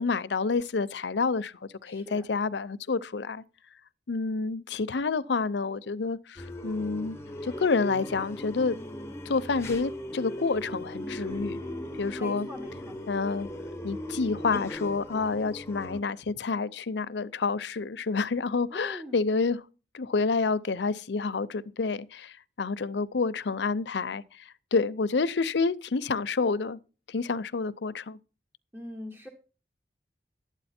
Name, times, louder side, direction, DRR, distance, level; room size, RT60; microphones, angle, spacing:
voice 1, 0.0-3.4 4.1-7.2 7.4-8.8 9.3-11.6 12.0-12.5 13.1-13.5 13.8-19.6 19.9-26.8 27.1-28.2, left 4 dB, 85° left, 0.6 m, -29 dB
voice 2, 1.9-2.3 12.2-13.0 18.7-19.2 28.7-29.3, left 1 dB, 10° right, 1.4 m, -42 dB
sound 1, 6.4-16.0, equal, 15° left, 1.0 m, -38 dB
12.0 x 9.0 x 4.3 m
head